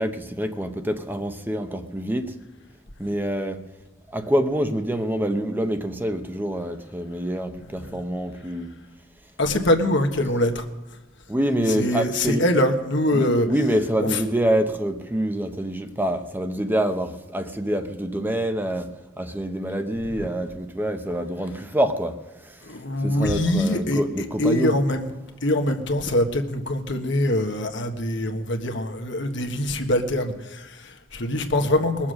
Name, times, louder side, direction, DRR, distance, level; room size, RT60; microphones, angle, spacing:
voice 1, 0.0-2.3 3.0-3.6 4.1-8.7 11.3-12.4 13.1-18.9 19.2-22.2 22.4-22.6 23.0-24.7, right 1 dB, 10° right, 7 dB, 0.9 m, -26 dB
voice 2, 9.4-11.0 11.7-13.5 14.0-14.2 20.1-20.3 22.6-25.1 25.4-32.1, left 1 dB, 65° left, 6 dB, 1.5 m, -24 dB
21.0 x 7.3 x 6.4 m, 1.1 s
head